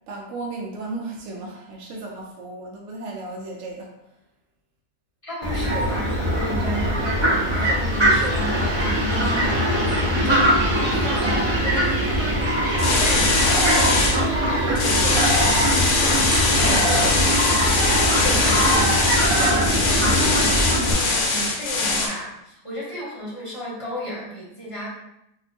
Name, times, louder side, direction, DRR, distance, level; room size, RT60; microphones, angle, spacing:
voice 1, 0.1-3.9 10.0-10.4, right 2 dB, 70° right, -2 dB, 0.8 m, -35 dB
voice 2, 5.2-13.8 14.1-24.9, equal, 25° left, -6 dB, 0.9 m, -33 dB
Fowl, 5.4-20.9, equal, 30° right, 0.5 m, -22 dB
sound 1, 12.8-14.2 14.8-22.1, left 3 dB, 75° left, 1.1 m, -21 dB
2.9 x 2.1 x 4.1 m, 0.83 s
omnidirectional pair, 1.7 m